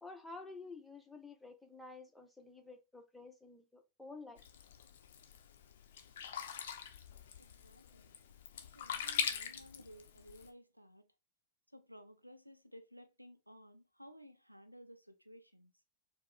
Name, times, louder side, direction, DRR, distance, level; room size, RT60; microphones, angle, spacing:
voice 1, 0.0-4.4, left 3 dB, 5° left, 0.8 m, -51 dB
Sink (filling or washing), 4.4-10.5, left 7 dB, 60° left, 0.5 m, -42 dB
voice 2, 7.4-11.1 11.7-15.7, equal, 90° right, 0.4 m, -57 dB
4.5 x 2.1 x 3.3 m
figure-of-eight pair, 90°, 0 cm